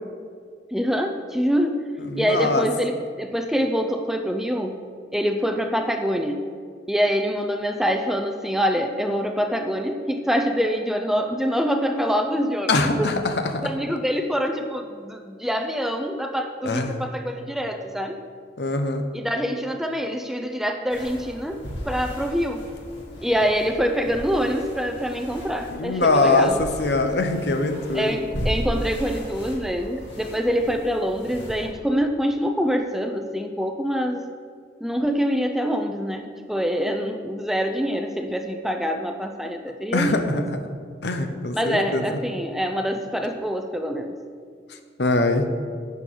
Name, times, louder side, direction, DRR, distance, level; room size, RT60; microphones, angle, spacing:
voice 1, 0.7-1.9 2.2-4.8 5.1-6.5 6.9-13.1 13.6-18.2 19.1-22.7 23.2-26.6 27.9-34.2 34.8-40.5 41.5-44.2, equal, ahead, 5 dB, 0.5 m, -25 dB
voice 2, 2.1-2.7 12.7-13.7 16.6-17.0 18.6-19.0 25.7-28.2 39.9-40.6 41.0-42.0 45.0-45.5, left 2 dB, 70° left, 7 dB, 0.9 m, -22 dB
sound 1, 20.9-31.7, equal, 85° left, 2.4 m, -35 dB
11.0 x 8.3 x 3.9 m, 2.1 s
head